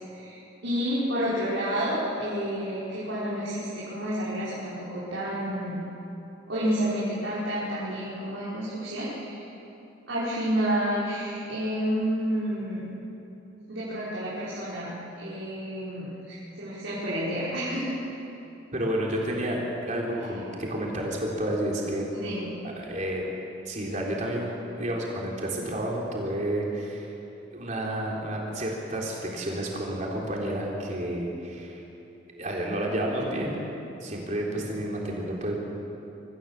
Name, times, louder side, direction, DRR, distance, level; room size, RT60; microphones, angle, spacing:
voice 1, 0.0-5.8 6.5-9.5 10.1-12.9 13.7-17.9 22.1-22.5, equal, 80° right, -10 dB, 5.2 m, -30 dB
voice 2, 18.7-22.1 22.8-23.2 23.7-24.5 24.8-27.1 27.5-31.8 32.4-33.6 34.0-35.6, right 1 dB, 40° right, -2 dB, 3.8 m, -30 dB
25.0 x 14.5 x 7.4 m, 2.9 s
head